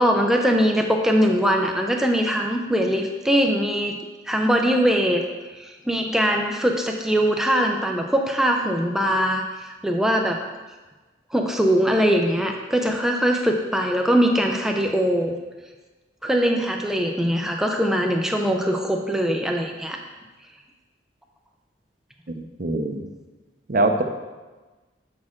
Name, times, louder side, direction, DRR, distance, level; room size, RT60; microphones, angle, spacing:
voice 1, 0.0-3.9 4.3-5.2 5.6-10.4 11.3-15.4 16.2-20.0, equal, 5° right, 2 dB, 0.5 m, -21 dB
voice 2, 22.6-23.0 23.7-24.0, right 2 dB, 45° right, 5 dB, 0.6 m, -22 dB
7.3 x 6.3 x 3.7 m, 1.2 s
head